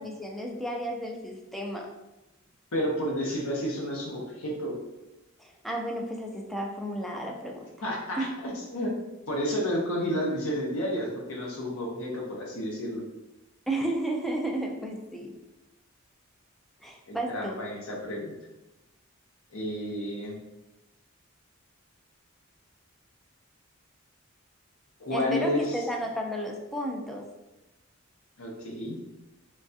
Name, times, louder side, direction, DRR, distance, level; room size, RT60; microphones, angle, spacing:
voice 1, 0.0-1.9 5.4-7.7 8.2-8.3 13.7-15.3 16.8-17.6 25.1-27.3, right 1 dB, ahead, 0 dB, 0.3 m, -33 dB
voice 2, 2.7-4.7 7.8-8.9 9.3-13.0 17.1-18.3 19.5-20.4 25.0-25.8 28.4-29.0, equal, 80° left, -2 dB, 0.7 m, -31 dB
3.2 x 2.3 x 2.6 m, 1.0 s
head